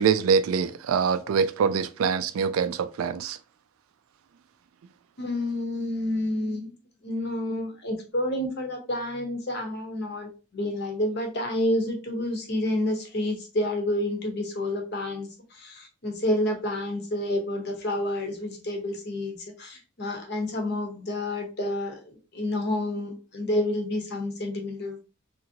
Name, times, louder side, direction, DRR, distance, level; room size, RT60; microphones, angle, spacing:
voice 1, 0.0-3.4, right 6 dB, 85° right, 0.3 m, -24 dB
voice 2, 5.2-6.7 7.0-15.3 15.6-25.0, left 1 dB, 50° left, 0.8 m, -29 dB
2.8 x 2.6 x 2.7 m
head